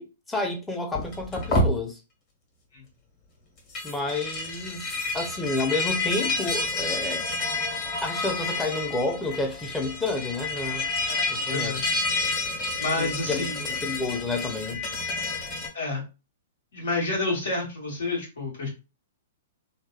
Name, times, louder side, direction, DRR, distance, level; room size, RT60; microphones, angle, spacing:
voice 1, 0.0-2.0 3.8-7.2 8.0-10.8 11.3-11.8 12.9-14.8, left 2 dB, 10° left, 0.6 m, -30 dB
sound 1, 0.9-1.7 3.6-15.7, left 2 dB, 35° left, 1.4 m, -29 dB
voice 2, 11.1-11.9 12.8-13.6 15.7-16.0 16.7-18.7, left 2 dB, 75° left, 1.4 m, -29 dB
2.7 x 2.2 x 2.4 m
hypercardioid pair, 130°, 0 cm